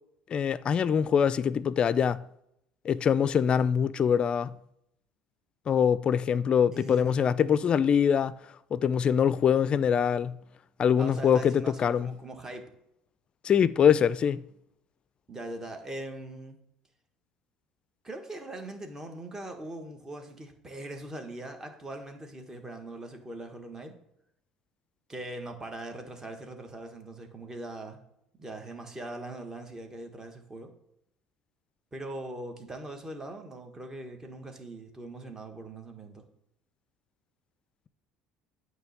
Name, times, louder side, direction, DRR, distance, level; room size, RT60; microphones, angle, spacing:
voice 1, 0.3-2.2 2.8-4.5 5.7-8.4 8.7-10.4 10.8-12.1 13.4-14.4, left 8 dB, 40° left, 0.4 m, -24 dB
voice 2, 6.7-7.3 11.0-12.7 15.3-16.6 18.0-24.0 25.1-28.0 28.4-30.7 31.9-36.2, right 1 dB, 20° right, 1.5 m, -41 dB
8.9 x 3.2 x 6.5 m
supercardioid pair, 90°, 3 cm